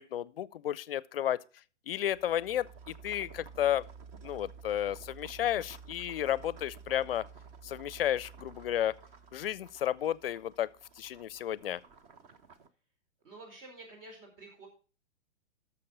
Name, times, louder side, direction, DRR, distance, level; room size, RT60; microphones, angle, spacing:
voice 1, 0.0-1.4 1.9-3.8 4.2-7.3 7.6-8.9 9.3-10.7 11.0-11.8, left 11 dB, 50° left, 0.5 m, -32 dB
sound 1, 2.1-12.7, right 6 dB, 20° right, 0.6 m, -52 dB
voice 2, 13.2-14.7, right 2 dB, 50° right, 4.1 m, -50 dB
12.0 x 6.8 x 5.3 m
figure-of-eight pair, 115°, 36 cm